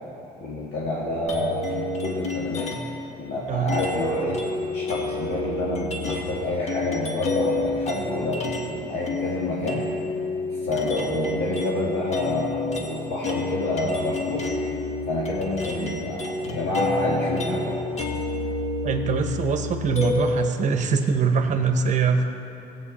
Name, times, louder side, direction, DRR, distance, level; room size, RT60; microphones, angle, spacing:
voice 1, 0.4-2.7 3.2-4.4 4.7-9.9 10.5-14.5 15.1-17.8, left 2 dB, 80° left, -7 dB, 2.1 m, -28 dB
sound 1, 1.3-3.0 3.7-8.8 9.1-20.5, left 2 dB, 40° left, 1.4 m, -29 dB
voice 2, 18.8-22.2, right 5 dB, 45° right, 6 dB, 1.1 m, -23 dB
16.5 x 8.3 x 4.3 m, 2.9 s
cardioid pair, 110°, 17 cm